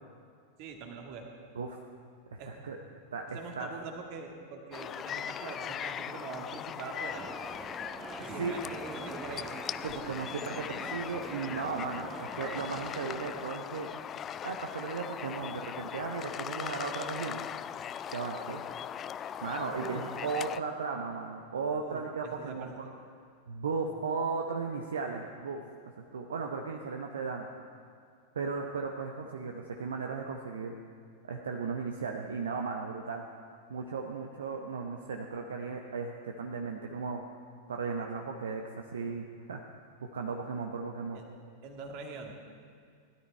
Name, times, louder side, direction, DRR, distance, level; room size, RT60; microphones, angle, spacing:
voice 1, 0.6-1.2 2.4-2.5 3.3-7.3 8.2-9.5 19.7-20.1 21.8-22.7 41.1-41.2 41.6-42.3, right 5 dB, 45° right, 2 dB, 1.9 m, -43 dB
voice 2, 2.3-2.8 3.1-3.7 8.2-8.5 9.8-13.9 14.4-17.5 18.1-18.6 19.4-22.7 23.5-25.6 26.1-27.5 28.3-30.7 31.2-33.2 33.7-37.2 37.7-39.6 40.0-41.2, right 4 dB, 65° right, 2 dB, 0.8 m, -36 dB
sound 1, 4.7-20.6, left 9 dB, 25° left, 0.3 m, -39 dB
sound 2, 7.2-13.4, right 4 dB, 20° right, 0.9 m, -45 dB
17.0 x 12.0 x 4.5 m, 2.3 s
figure-of-eight pair, 90°, 0 cm